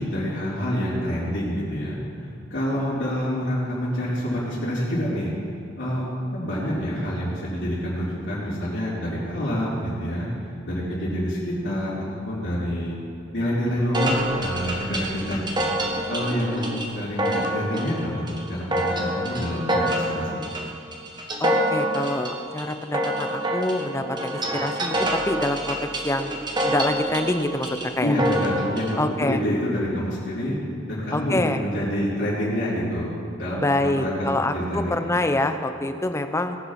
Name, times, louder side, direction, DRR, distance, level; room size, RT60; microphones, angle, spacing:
voice 1, 0.0-2.0 2.5-5.3 5.8-6.0 6.3-10.3 10.6-13.0 13.3-15.7 16.1-17.9 18.3-20.4 28.0-30.6 30.9-35.1, equal, 60° left, -13 dB, 3.6 m, -27 dB
sound 1, 13.9-28.9, right 1 dB, 25° right, 1.3 m, -27 dB
voice 2, 21.4-25.8 26.0-26.3 26.6-28.2 29.0-29.4 31.1-31.6 33.6-36.6, left 1 dB, 15° left, 8 dB, 0.6 m, -26 dB
19.0 x 6.7 x 5.9 m, 2.4 s
head